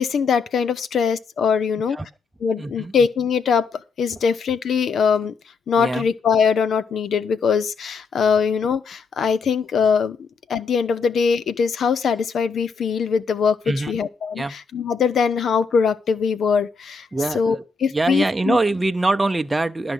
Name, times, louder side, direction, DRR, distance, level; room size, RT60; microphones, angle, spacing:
voice 1, 0.0-2.0 2.4-3.7 4.0-5.3 5.7-13.6 13.9-17.1 17.3-18.6, left 6 dB, 60° left, 0.8 m, -21 dB
voice 2, 2.6-2.9 5.8-6.1 13.7-14.0 14.4-14.5 17.1-17.6 17.9-19.9, right 2 dB, 20° right, 0.7 m, -23 dB
12.0 x 5.0 x 8.0 m
supercardioid pair, 65°, 0 cm